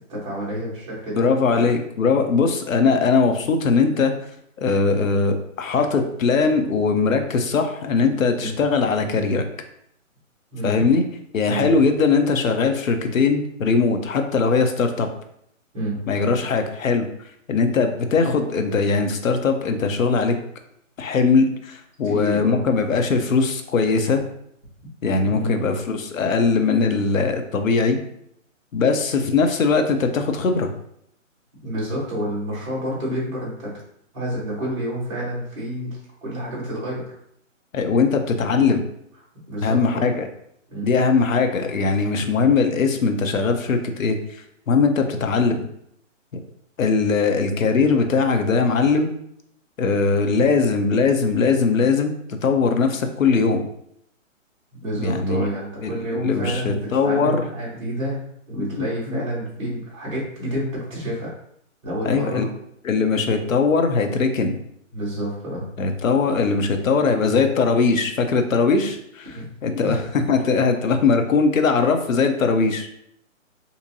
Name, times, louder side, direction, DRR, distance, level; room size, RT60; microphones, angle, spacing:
voice 1, 0.1-1.3 1.5-1.6 8.4-8.5 10.5-10.8 11.5-11.7 15.7-16.0 22.0-22.6 25.3-25.6 31.6-33.7 34.1-37.1 39.5-40.1 40.7-40.9 49.9-50.0 54.8-61.3 61.8-62.5 64.9-65.7 69.3-69.5 69.8-70.3, right 1 dB, 20° right, -9 dB, 1.4 m, -29 dB
voice 2, 1.2-4.1 4.6-9.5 10.6-11.0 11.3-15.1 16.1-17.0 17.5-20.4 21.0-24.2 25.0-28.0 28.7-30.7 37.7-38.8 39.6-40.2 40.8-44.2 44.7-45.6 46.3-46.4 46.8-49.1 49.8-52.1 52.4-53.6 55.0-55.5 55.8-57.4 58.7-59.2 59.6-59.7 62.0-62.4 62.8-64.6 65.8-72.9, left 4 dB, 80° left, 6 dB, 0.7 m, -20 dB
3.7 x 2.8 x 2.7 m, 0.72 s
hypercardioid pair, 175°, 40 cm